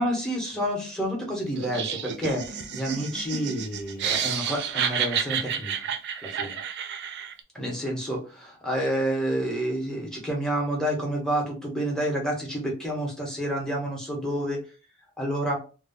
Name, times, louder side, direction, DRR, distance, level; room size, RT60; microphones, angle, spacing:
voice 1, 0.0-6.6 7.5-14.6 15.2-15.6, equal, 5° left, -1 dB, 0.9 m, -29 dB
Laughter, 1.6-7.4, right 8 dB, 55° right, 0.4 m, -30 dB
2.2 x 2.2 x 3.5 m, 0.34 s
head